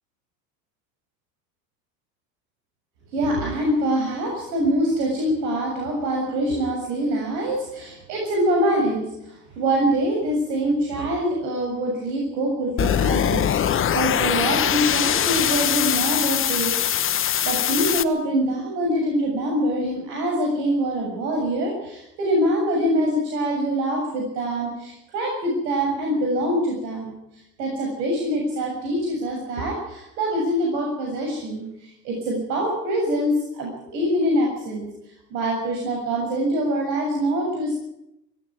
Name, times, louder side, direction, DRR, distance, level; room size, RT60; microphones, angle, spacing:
voice 1, 3.1-16.8 17.0-27.2 27.6-34.9 35.3-37.8, right 1 dB, 75° right, 0 dB, 7.1 m, -24 dB
sound 1, 12.8-18.0, left 9 dB, 25° left, 1.1 m, -22 dB
18.5 x 16.5 x 9.4 m, 0.86 s
hypercardioid pair, 105°, 50 cm